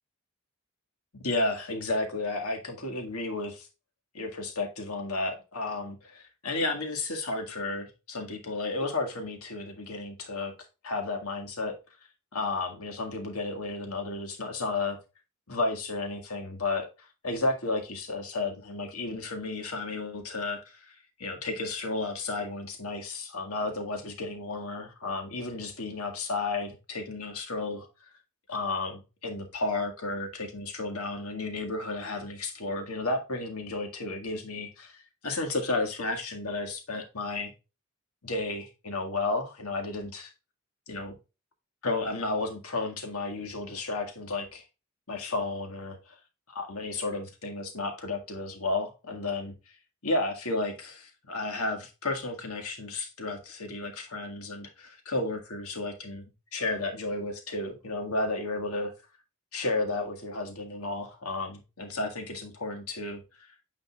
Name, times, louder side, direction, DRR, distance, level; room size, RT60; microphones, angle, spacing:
voice 1, 1.1-3.7 4.1-10.5 10.8-11.8 12.3-15.0 15.5-27.9 28.5-37.5 38.2-40.3 40.9-41.2 41.8-44.6 45.1-46.2 46.5-49.5 50.0-56.2 56.5-58.9 59.5-63.5, left 2 dB, 80° left, 1.8 m, -33 dB
8.9 x 5.2 x 2.3 m
head